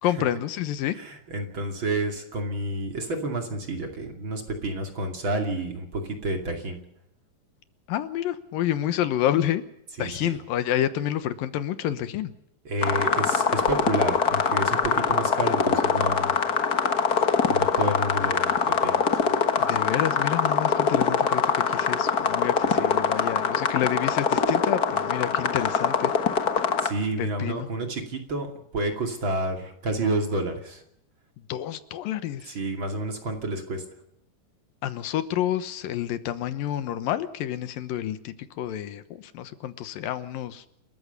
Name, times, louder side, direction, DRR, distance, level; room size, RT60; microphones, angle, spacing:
voice 1, 0.0-1.0 7.9-9.6 10.0-12.3 19.6-26.1 27.2-27.7 31.5-32.6 34.8-40.8, left 11 dB, 80° left, 12 dB, 2.8 m, -29 dB
voice 2, 0.9-6.8 10.0-10.4 12.6-16.3 17.5-19.3 26.8-28.5 28.7-30.8 32.5-33.8, right 2 dB, 35° right, 4 dB, 3.0 m, -30 dB
sound 1, 12.8-26.9, left 6 dB, 65° left, 0.9 m, -23 dB
29.0 x 14.0 x 6.9 m, 0.77 s
omnidirectional pair, 4.0 m